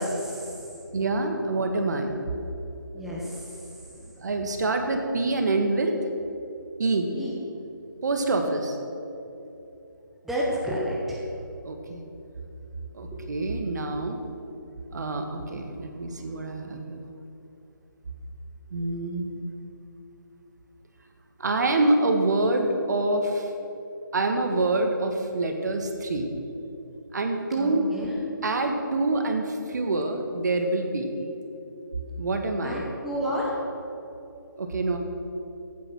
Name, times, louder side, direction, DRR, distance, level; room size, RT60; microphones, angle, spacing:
voice 1, 0.0-1.3 2.9-3.5 7.1-7.3 10.2-11.2 13.1-13.2 27.6-28.2 32.6-33.6, equal, ahead, -6 dB, 1.5 m, -31 dB
voice 2, 0.9-2.1 4.2-6.0 6.8-7.1 8.0-8.8 11.6-12.0 12.9-14.2 14.9-17.0 18.7-19.3 21.4-23.5 24.1-26.3 27.1-27.9 28.4-31.1 32.2-32.8 34.6-35.0, right 2 dB, 55° right, 4 dB, 1.8 m, -26 dB
15.5 x 8.8 x 6.2 m, 2.9 s
figure-of-eight pair, 155°, 11 cm